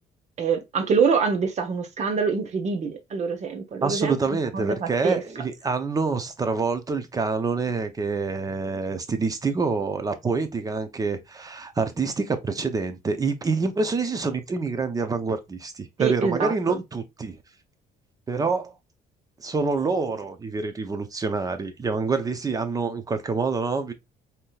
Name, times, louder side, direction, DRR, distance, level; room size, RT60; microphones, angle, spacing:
voice 1, 0.4-4.2 4.5-5.2 16.0-16.8, right 5 dB, 45° right, 0.9 m, -25 dB
voice 2, 3.8-17.4 18.3-18.7 19.4-23.9, right 4 dB, 20° right, 0.6 m, -27 dB
3.5 x 2.8 x 2.3 m
cardioid pair, 110°, 17 cm